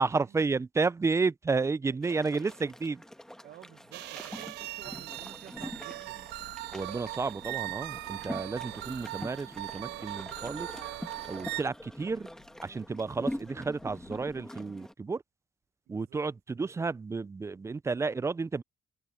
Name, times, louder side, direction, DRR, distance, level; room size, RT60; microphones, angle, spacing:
voice 1, 0.0-3.0 6.7-10.7 11.3-12.3 12.6-15.2 15.9-18.6, right 4 dB, 15° right, 0.4 m, -31 dB
voice 2, 1.8-2.6 3.4-6.3 11.3-11.6 15.9-16.2, right 13 dB, 65° right, 1.0 m, -52 dB
sound 1, 2.0-14.9, left 1 dB, 5° left, 1.4 m, -44 dB
sound 2, 3.9-11.6, right 18 dB, 85° right, 0.6 m, -40 dB
sound 3, 10.3-14.4, left 16 dB, 85° left, 3.4 m, -64 dB
cardioid pair, 110°, 17 cm